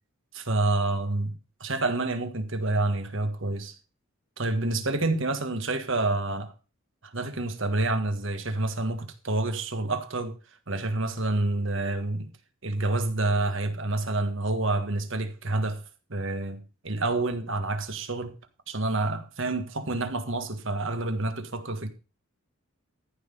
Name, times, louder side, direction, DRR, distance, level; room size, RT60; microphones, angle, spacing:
voice 1, 0.3-3.8 4.4-6.5 7.0-10.4 10.7-12.3 12.6-15.8 16.1-18.4 18.7-21.9, right 2 dB, 60° right, 1.6 m, -28 dB
14.0 x 5.8 x 5.3 m
head